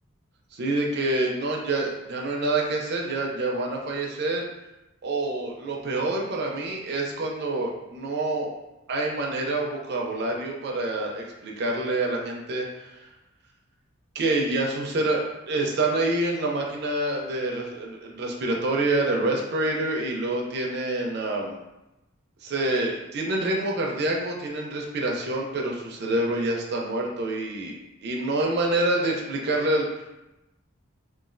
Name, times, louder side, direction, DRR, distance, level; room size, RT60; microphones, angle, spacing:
voice 1, 0.5-4.5 5.0-8.5 8.9-13.1 14.1-21.6 22.4-29.9, right 2 dB, 55° right, -1 dB, 0.4 m, -27 dB
3.0 x 2.3 x 2.5 m, 0.97 s
head